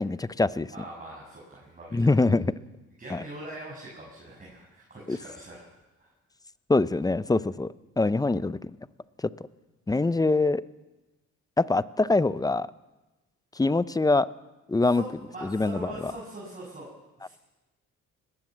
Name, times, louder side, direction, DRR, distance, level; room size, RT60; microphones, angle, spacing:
voice 1, 0.0-0.7 1.9-2.5 3.1-3.2 5.1-5.2 6.7-8.7 9.2-9.3 9.9-10.6 11.6-12.7 13.5-14.3 14.7-15.0 15.4-16.1, left 3 dB, 10° left, 16 dB, 0.6 m, -24 dB
voice 2, 0.7-2.1 3.0-5.7 6.0-6.1 14.8-16.9 17.2-17.3, right 2 dB, 25° right, -3 dB, 6.3 m, -42 dB
20.5 x 18.0 x 7.4 m, 1.1 s
cardioid pair, 90°, 30 cm